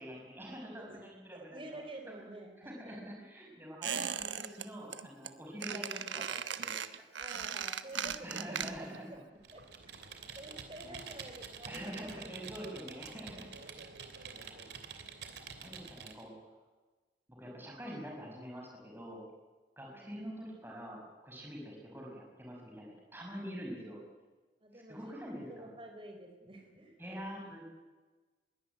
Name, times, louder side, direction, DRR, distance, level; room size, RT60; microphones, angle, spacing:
voice 1, 0.0-2.2 2.6-6.8 7.9-9.2 10.8-11.0 11.7-13.9 14.2-14.6 15.6-16.6 17.3-19.2 19.8-24.0 24.7-25.7 27.0-27.6, equal, 10° right, -1 dB, 5.7 m, -46 dB
voice 2, 1.3-3.1 7.2-9.1 9.5-9.6 10.3-12.1 19.9-20.2 24.6-27.0, right 1 dB, 30° right, 4 dB, 4.1 m, -49 dB
Squeak, 3.8-4.6 4.9-5.3 5.6-9.0 9.3-9.4, right 8 dB, 80° right, 1.2 m, -38 dB
Computer keyboard, 9.4-16.2, right 5 dB, 60° right, 2.9 m, -48 dB
22.0 x 17.5 x 9.1 m, 1.3 s
head